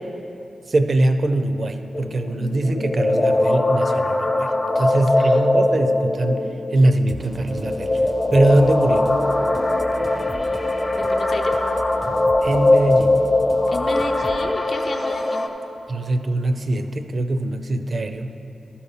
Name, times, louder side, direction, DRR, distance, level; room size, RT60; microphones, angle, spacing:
voice 1, 0.7-4.5 4.8-6.4 6.7-7.9 8.3-9.1 12.1-13.1 15.9-18.3, right 2 dB, 55° right, 8 dB, 0.5 m, -21 dB
sound 1, 1.9-15.5, left 2 dB, 35° left, 0.7 m, -21 dB
voice 2, 5.2-5.5 11.0-11.5 13.7-15.5, left 3 dB, 65° left, 2 dB, 0.7 m, -32 dB
sound 2, 7.1-14.5, right 1 dB, ahead, 0.5 m, -38 dB
12.0 x 4.2 x 5.6 m, 2.8 s
cardioid pair, 60°, 0 cm